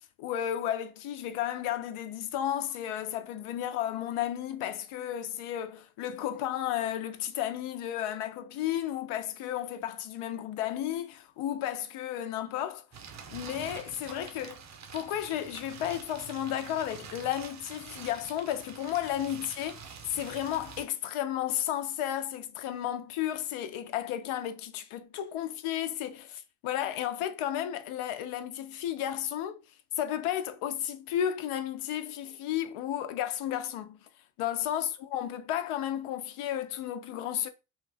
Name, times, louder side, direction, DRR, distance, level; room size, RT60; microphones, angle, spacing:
voice 1, 0.2-12.8 13.3-14.6 14.9-19.7 20.1-29.6 30.0-34.0 34.4-37.5, left 11 dB, 85° left, 0.6 m, -33 dB
sound 1, 12.9-20.8, right 6 dB, 35° right, 0.6 m, -46 dB
2.6 x 2.4 x 3.2 m
cardioid pair, 115°, 49 cm